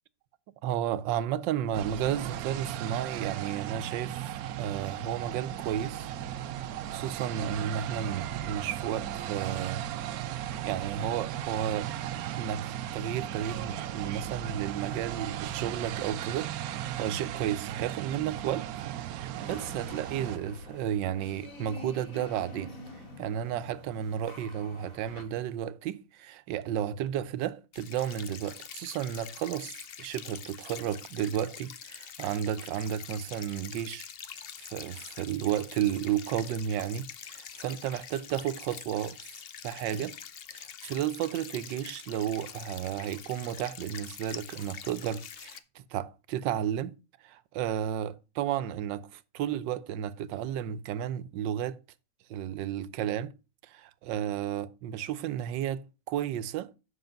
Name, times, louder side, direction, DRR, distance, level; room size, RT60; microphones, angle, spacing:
voice 1, 0.6-4.3 4.6-6.1 6.9-9.9 10.6-11.9 12.4-18.7 19.0-22.7 23.2-34.1 34.6-39.2 39.6-40.2 40.5-45.6 45.9-46.9 47.2-51.8 52.3-53.3 53.6-56.8, right 10 dB, 85° right, 1.4 m, -33 dB
sound 1, 1.7-20.4, right 11 dB, 70° right, 0.9 m, -36 dB
sound 2, 19.4-25.2, left 2 dB, 50° left, 2.4 m, -46 dB
sound 3, 27.7-45.6, left 8 dB, 70° left, 0.5 m, -45 dB
7.9 x 6.0 x 5.1 m
omnidirectional pair, 1.9 m